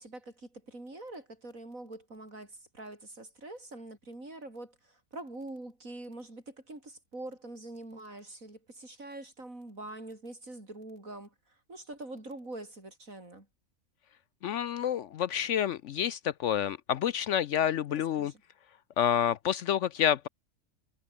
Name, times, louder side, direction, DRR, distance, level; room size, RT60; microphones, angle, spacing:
voice 1, 0.0-13.5 18.2-18.4, right 2 dB, 70° right, 7.0 m, -44 dB
voice 2, 14.4-18.3 19.0-20.3, left 9 dB, 65° left, 0.8 m, -28 dB
omnidirectional pair, 1.5 m